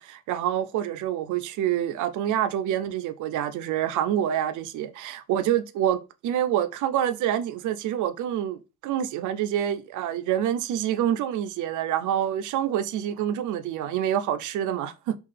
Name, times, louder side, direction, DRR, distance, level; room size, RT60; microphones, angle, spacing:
voice 1, 0.0-15.1, right 10 dB, 80° right, 0.5 m, -27 dB
3.7 x 2.4 x 3.3 m
cardioid pair, 90°, 30 cm